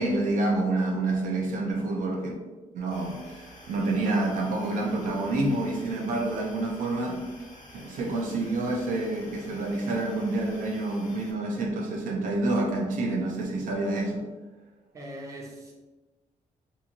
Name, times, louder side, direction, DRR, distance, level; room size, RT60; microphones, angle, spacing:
voice 1, 0.0-2.3 2.7-7.3 7.7-14.2, right 2 dB, 80° right, 1 dB, 0.5 m, -28 dB
sound 1, 2.9-11.3, left 1 dB, 80° left, 0.7 m, -49 dB
voice 2, 14.9-15.7, right 1 dB, 25° right, -1 dB, 0.5 m, -40 dB
2.7 x 2.6 x 2.8 m, 1.2 s
cardioid pair, 150°, 13 cm